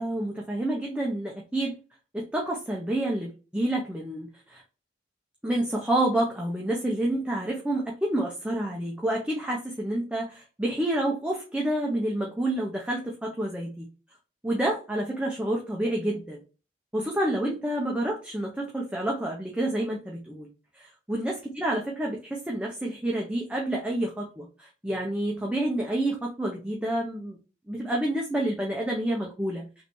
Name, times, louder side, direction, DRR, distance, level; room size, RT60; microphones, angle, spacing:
voice 1, 0.0-1.7 2.1-4.6 5.4-13.9 14.4-16.4 16.9-20.5 20.7-27.4 27.7-29.6, right 1 dB, 5° right, -2 dB, 0.7 m, -29 dB
5.2 x 3.3 x 3.1 m, 0.34 s
head